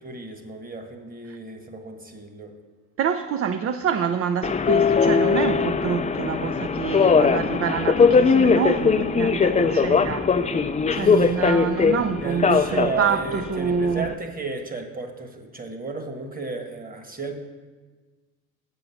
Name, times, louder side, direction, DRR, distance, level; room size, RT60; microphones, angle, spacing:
voice 1, 0.0-2.5 10.9-11.4 12.2-17.4, right 4 dB, 25° right, 1.5 m, -33 dB
voice 2, 3.0-10.3 10.9-14.1, right 7 dB, 40° right, 0.5 m, -26 dB
Subway metro underground, 4.4-14.1, left 5 dB, 20° left, 0.5 m, -20 dB
7.9 x 5.3 x 7.0 m
supercardioid pair, 75°, 36 cm